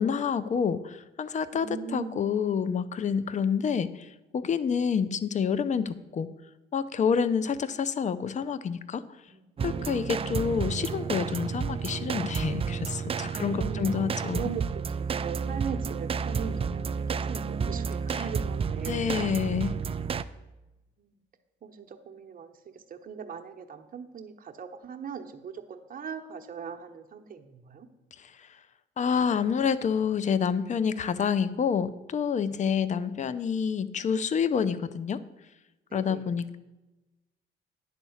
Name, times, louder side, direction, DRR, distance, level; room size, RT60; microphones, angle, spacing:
voice 1, 0.0-6.3 6.7-9.0 9.6-14.5 18.1-18.2 18.9-19.8 28.2-28.5 29.0-35.2 35.9-36.6, left 6 dB, 40° left, 14 dB, 0.5 m, -28 dB
voice 2, 1.5-2.2 9.3-9.6 13.2-14.1 14.3-19.3 21.0-21.2 21.6-27.9 32.6-33.3 35.9-36.3, right 6 dB, 45° right, 5 dB, 0.9 m, -40 dB
sound 1, 9.6-20.2, right 6 dB, 30° right, 0.4 m, -31 dB
10.5 x 4.2 x 7.1 m, 1.0 s
cardioid pair, 90°, 20 cm